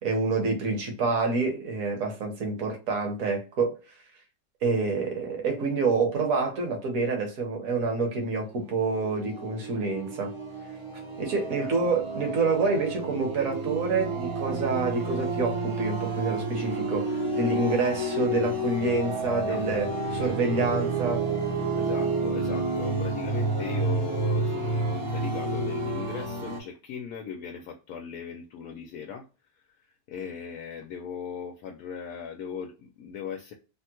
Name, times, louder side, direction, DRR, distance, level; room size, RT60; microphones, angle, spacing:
voice 1, 0.0-3.8 4.6-10.3 11.2-21.2, right 4 dB, 55° right, 1.3 m, -27 dB
sound 1, 8.5-26.6, right 2 dB, 35° right, 0.5 m, -30 dB
voice 2, 11.6-11.9 19.5-19.6 21.8-29.3 29.5-33.5, left 7 dB, 70° left, 1.0 m, -38 dB
3.5 x 2.1 x 2.9 m
omnidirectional pair, 1.8 m